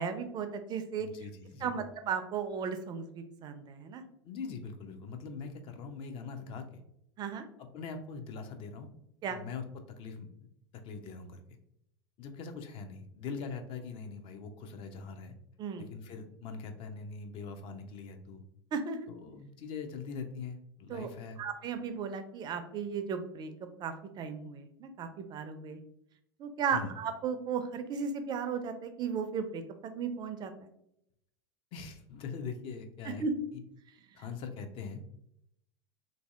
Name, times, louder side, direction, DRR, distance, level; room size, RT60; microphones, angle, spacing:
voice 1, 0.0-1.1 1.6-4.0 7.2-7.5 9.2-9.4 15.6-15.9 18.7-19.1 20.9-21.1 21.4-23.5 23.8-25.8 26.4-30.5 33.1-33.3, right 6 dB, 30° right, 8 dB, 0.4 m, -35 dB
voice 2, 1.0-1.8 4.2-6.8 7.6-8.9 9.3-10.3 10.7-11.4 12.2-15.3 15.8-18.4 19.1-21.4 26.7-26.9 31.7-33.2 33.5-33.6 34.1-35.0, left 5 dB, 40° left, 6 dB, 0.5 m, -42 dB
3.0 x 2.6 x 2.4 m, 0.76 s
hypercardioid pair, 90°, 13 cm